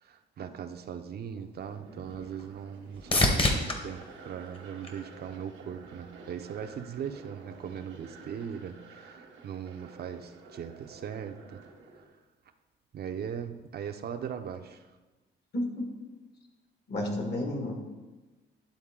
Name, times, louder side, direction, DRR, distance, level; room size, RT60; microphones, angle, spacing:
voice 1, 0.0-11.6 12.9-14.9, right 8 dB, 55° right, 7 dB, 0.5 m, -39 dB
sound 1, 1.4-5.6 6.1-6.7 14.5-14.6, left 2 dB, 25° left, 1.0 m, -31 dB
sound 2, 1.6-12.1, right 4 dB, 85° right, 1.2 m, -51 dB
voice 2, 15.5-15.9 16.9-17.8, left 1 dB, 55° left, 1 dB, 1.7 m, -31 dB
11.0 x 3.9 x 3.7 m, 1.2 s
cardioid pair, 90°, 20 cm